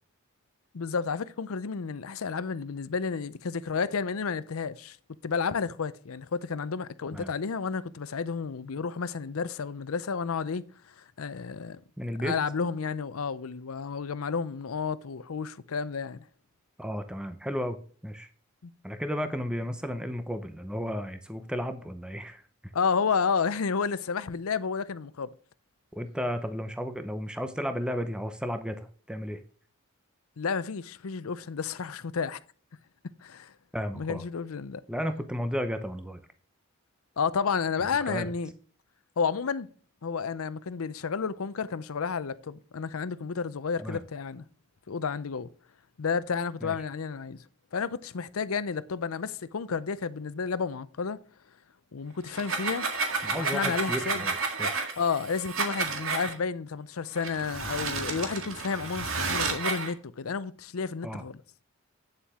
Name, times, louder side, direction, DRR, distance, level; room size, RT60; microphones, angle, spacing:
voice 1, 0.7-5.0 5.2-11.8 12.2-16.3 18.6-18.7 22.7-25.3 30.4-32.4 33.2-33.5 33.9-34.8 37.2-38.5 39.2-39.7 40.0-44.5 44.9-45.5 46.0-47.4 47.7-51.2 51.9-52.9 53.3-54.3 55.0-61.4, left 5 dB, 85° left, 0.6 m, -31 dB
voice 2, 12.0-12.3 16.8-18.3 18.8-22.7 25.9-29.4 33.7-34.2 34.9-36.2 38.1-38.3 43.8-44.0 46.6-46.8 53.2-54.8 61.0-61.2, equal, 5° right, 0.7 m, -33 dB
sound 1, 52.3-56.3 57.1-59.9, right 4 dB, 75° right, 1.9 m, -31 dB
9.0 x 7.1 x 3.6 m
head